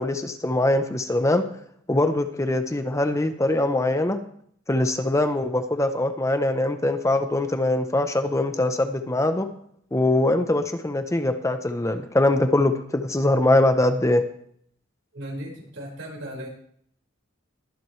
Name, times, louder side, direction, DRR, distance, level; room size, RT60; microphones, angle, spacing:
voice 1, 0.0-1.4 1.9-4.2 4.7-9.5 9.9-14.2, left 1 dB, 15° left, 8 dB, 0.7 m, -22 dB
voice 2, 15.1-16.5, equal, 80° right, -2 dB, 5.0 m, -36 dB
22.0 x 7.6 x 3.2 m, 0.65 s
head